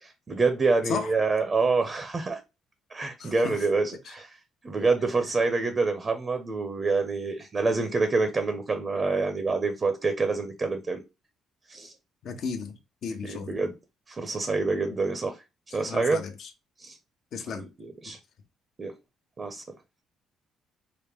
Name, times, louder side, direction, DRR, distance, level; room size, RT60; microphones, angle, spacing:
voice 1, 0.0-2.4 2.9-4.3 4.6-11.0 11.7-11.9 13.2-13.8 14.1-15.4 15.7-16.2 16.8-17.0 17.5-18.2 18.8-18.9 19.4-19.6, right 3 dB, 30° right, 0.8 m, -27 dB
voice 2, 3.2-3.6 4.1-4.2 12.2-13.6 15.8-16.5 17.3-17.7, left 5 dB, 60° left, 0.9 m, -34 dB
4.9 x 2.1 x 3.4 m
cardioid pair, 110°, 0 cm